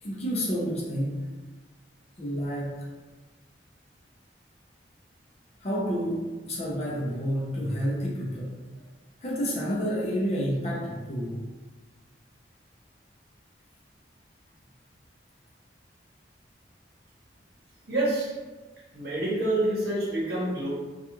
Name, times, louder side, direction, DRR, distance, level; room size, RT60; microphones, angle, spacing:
voice 1, 0.0-1.2 2.2-2.8 5.6-8.5 9.2-11.4, equal, 35° left, -4 dB, 0.5 m, -29 dB
voice 2, 17.9-18.3 18.9-20.7, right 1 dB, 60° right, -6 dB, 0.9 m, -27 dB
2.4 x 2.3 x 2.9 m, 1.3 s
head